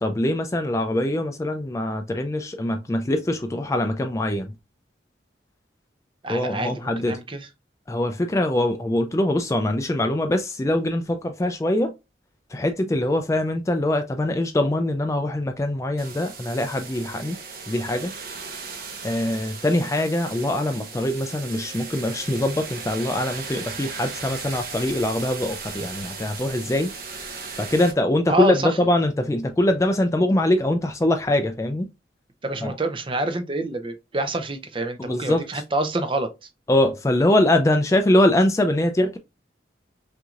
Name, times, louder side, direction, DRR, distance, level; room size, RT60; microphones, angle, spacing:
voice 1, 0.0-4.5 6.3-7.2 7.9-11.9 12.5-17.4 17.7-18.1 19.0-26.9 27.6-31.9 32.6-32.7 35.0-35.5 36.7-39.2, left 1 dB, 15° left, 0.3 m, -23 dB
voice 2, 6.2-7.5 28.3-28.8 32.4-36.3, right 1 dB, 30° right, 0.6 m, -27 dB
sound 1, 16.0-27.9, right 5 dB, 50° right, 0.9 m, -37 dB
5.8 x 2.7 x 2.4 m
head